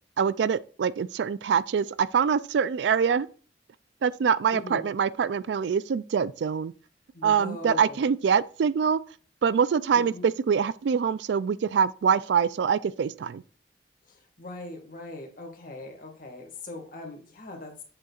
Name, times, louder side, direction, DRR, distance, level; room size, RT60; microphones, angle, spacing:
voice 1, 0.2-3.3 4.0-6.7 7.2-9.0 9.4-13.4, right 7 dB, 70° right, 0.3 m, -24 dB
voice 2, 4.5-4.8 7.1-8.0 9.9-10.2 14.1-17.8, left 2 dB, 50° left, 1.8 m, -40 dB
7.6 x 6.8 x 2.4 m
head